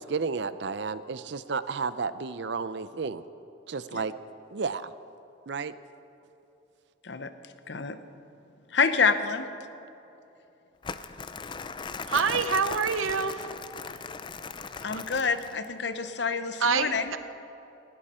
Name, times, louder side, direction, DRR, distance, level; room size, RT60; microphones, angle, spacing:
voice 1, 0.0-3.2 3.7-4.1 4.5-4.9 5.5-5.7, right 5 dB, 60° right, 14 dB, 0.5 m, -32 dB
voice 2, 8.7-9.5 14.8-17.1, left 5 dB, 60° left, 10 dB, 0.8 m, -27 dB
Crumpling crinkling, 10.8-15.7, left 5 dB, 25° left, 0.4 m, -38 dB
voice 3, 12.0-13.5 16.6-17.2, right 5 dB, 85° right, 11 dB, 0.9 m, -26 dB
19.0 x 16.5 x 4.3 m, 2.9 s
head